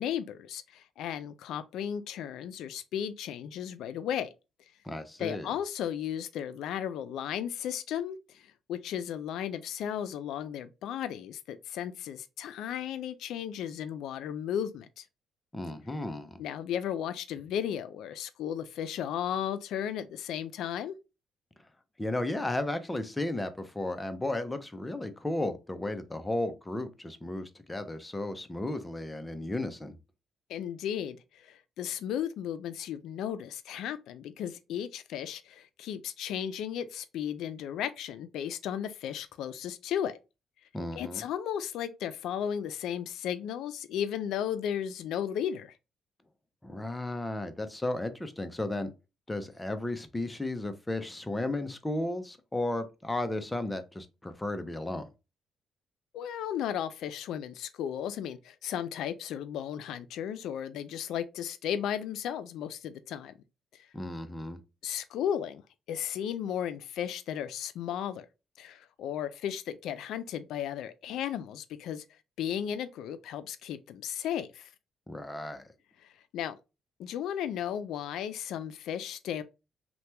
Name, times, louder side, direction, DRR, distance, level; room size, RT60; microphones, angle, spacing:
voice 1, 0.0-4.3 5.2-15.0 16.4-20.9 30.5-40.2 41.0-45.7 56.1-63.3 64.8-65.6 65.9-68.3 68.6-72.0 72.4-74.7 76.3-76.6 77.0-79.4, left 9 dB, 85° left, 0.3 m, -35 dB
voice 2, 4.8-5.5 15.5-16.4 22.0-30.0 40.7-41.2 46.6-48.9 49.3-55.1 63.9-64.6 75.1-75.7, left 1 dB, 15° left, 0.5 m, -34 dB
2.8 x 2.2 x 3.2 m
cardioid pair, 90°, 0 cm